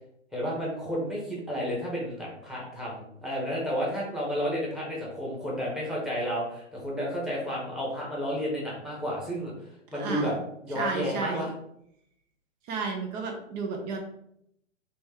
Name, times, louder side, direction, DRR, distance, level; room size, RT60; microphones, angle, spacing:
voice 1, 0.3-9.5 9.9-10.4 10.6-11.5, equal, ahead, -4 dB, 1.3 m, -31 dB
voice 2, 9.9-10.4 10.7-11.5 12.7-14.0, right 4 dB, 35° right, 2 dB, 1.0 m, -32 dB
4.1 x 3.0 x 3.7 m, 0.73 s
hypercardioid pair, 120°, 37 cm